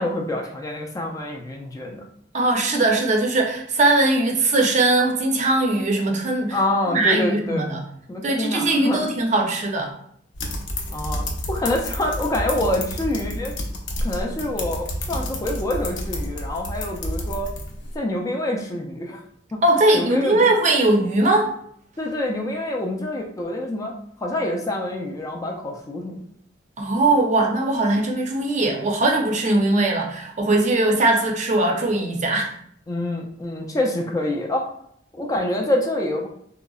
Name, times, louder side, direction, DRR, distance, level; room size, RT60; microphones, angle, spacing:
voice 1, 0.0-2.0 6.5-7.7 8.1-9.1 10.9-13.5 14.0-17.5 17.9-19.2 19.5-19.6 19.9-20.5 22.0-24.0 24.2-26.2 32.9-34.7 35.1-36.3, left 1 dB, 20° left, 0 dB, 0.3 m, -26 dB
voice 2, 2.3-6.6 6.9-7.8 8.2-9.9 19.6-21.5 26.8-32.5, right 2 dB, 40° right, 1 dB, 0.5 m, -20 dB
sound 1, 10.3-17.9, left 1 dB, 80° left, 0.6 m, -29 dB
3.7 x 2.0 x 2.3 m, 0.67 s
head